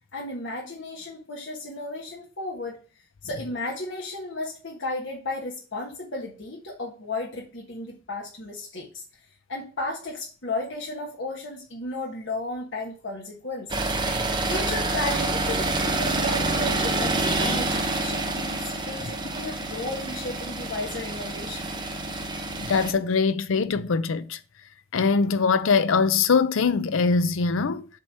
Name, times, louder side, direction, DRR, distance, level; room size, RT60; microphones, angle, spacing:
voice 1, 0.1-2.8 3.2-9.0 9.5-13.8 14.1-21.7, left 2 dB, 60° left, 1.3 m, -34 dB
sound 1, 13.7-22.9, right 2 dB, 20° right, 0.8 m, -27 dB
voice 2, 22.6-24.4 24.9-27.9, left 5 dB, 80° left, 0.5 m, -22 dB
7.5 x 3.1 x 5.5 m
head